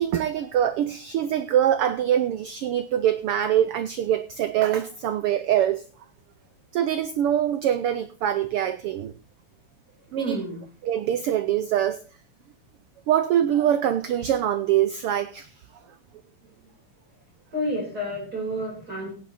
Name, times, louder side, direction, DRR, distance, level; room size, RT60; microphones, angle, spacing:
voice 1, 0.0-5.8 6.7-9.1 10.1-10.3 10.9-12.0 13.1-15.5, right 10 dB, 90° right, 12 dB, 1.2 m, -24 dB
voice 2, 10.1-10.6 16.6-16.7 17.5-19.1, equal, 30° right, -4 dB, 5.5 m, -30 dB
16.5 x 8.6 x 4.2 m, 0.38 s
omnidirectional pair, 3.4 m